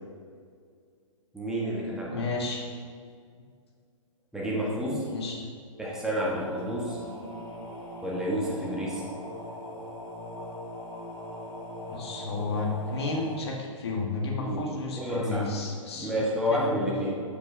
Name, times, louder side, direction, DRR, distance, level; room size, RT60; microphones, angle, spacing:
voice 1, 1.3-2.2 4.3-5.0 5.8-7.0 8.0-9.0 14.4-14.6 15.0-15.5 15.9-17.2, equal, 5° right, -5 dB, 1.3 m, -29 dB
voice 2, 2.1-2.7 4.8-5.5 11.9-16.1 16.5-16.9, left 3 dB, 50° left, 0 dB, 1.4 m, -32 dB
sound 1, 6.2-13.4, left 1 dB, 30° left, 1.4 m, -40 dB
12.0 x 5.5 x 2.7 m, 2.1 s
figure-of-eight pair, 120°, 17 cm